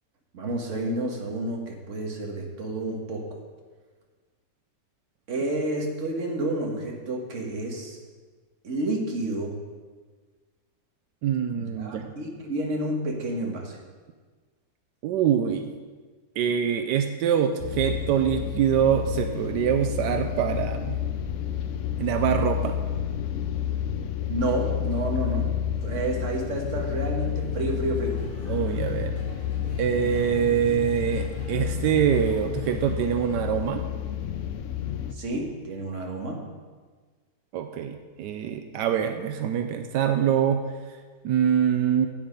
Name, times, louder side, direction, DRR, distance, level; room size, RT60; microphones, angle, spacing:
voice 1, 0.3-3.3 5.3-8.0 8.6-9.6 11.5-13.8 24.3-25.5 25.8-28.2 35.1-36.4, right 1 dB, 45° right, 0 dB, 1.7 m, -30 dB
voice 2, 11.2-12.1 15.0-15.7 16.4-21.0 22.0-22.7 28.5-29.1 29.8-33.8 37.5-40.6 41.2-42.1, right 9 dB, 85° right, 6 dB, 1.2 m, -24 dB
sound 1, 17.6-35.1, left 9 dB, 70° left, 0.7 m, -30 dB
sound 2, 28.0-33.1, right 2 dB, 55° left, 2.6 m, -42 dB
8.7 x 8.6 x 5.2 m, 1.4 s
omnidirectional pair, 1.8 m